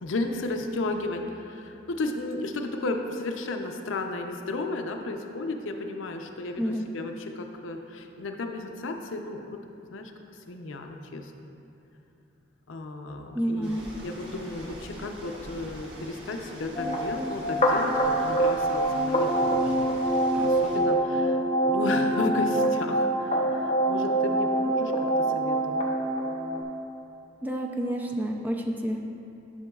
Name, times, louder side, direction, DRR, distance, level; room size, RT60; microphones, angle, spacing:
voice 1, 0.0-9.6 9.9-10.1 10.5-11.5 12.7-24.9 25.3-25.8, left 2 dB, 85° left, 4 dB, 0.5 m, -34 dB
voice 2, 13.3-13.9 27.4-29.0, equal, 10° right, 1 dB, 0.4 m, -29 dB
sound 1, 13.6-20.8, equal, 60° right, 1.6 m, -44 dB
sound 2, 16.7-26.6, right 1 dB, 35° left, 0.7 m, -25 dB
11.0 x 5.9 x 2.3 m, 2.8 s
head